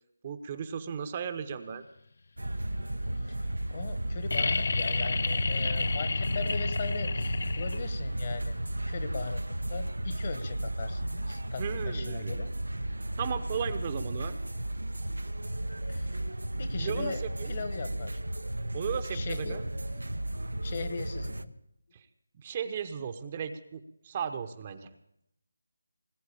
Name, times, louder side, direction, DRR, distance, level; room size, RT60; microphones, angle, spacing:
voice 1, 0.2-1.8 11.6-12.4 13.2-14.3 16.8-17.5 18.7-19.6 21.9-22.1 22.4-24.9, right 7 dB, 30° right, 9 dB, 0.9 m, -35 dB
sound 1, 2.4-21.5, right 1 dB, 85° right, 0.8 m, -34 dB
voice 2, 3.7-8.6 8.9-12.5 15.9-16.1 16.6-17.2 17.5-18.2 19.1-20.0 20.6-21.5, left 5 dB, 40° left, 10 dB, 1.4 m, -39 dB
sound 2, 4.3-8.1 9.8-9.9, left 4 dB, 55° left, 0.5 m, -31 dB
19.5 x 8.1 x 8.3 m, 0.76 s
figure-of-eight pair, 160°, 0 cm